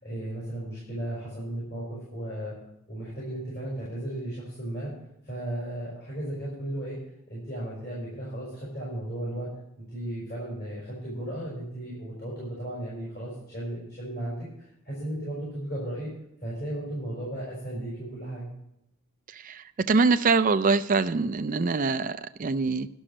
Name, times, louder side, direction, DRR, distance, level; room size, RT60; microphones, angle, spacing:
voice 1, 0.0-2.5 2.9-4.9 5.2-7.0 7.3-9.5 9.8-16.1 16.4-18.5, right 1 dB, 45° left, -7 dB, 5.3 m, -35 dB
voice 2, 19.3-22.9, right 4 dB, 35° right, 10 dB, 0.4 m, -24 dB
11.5 x 6.2 x 8.7 m, 0.81 s
head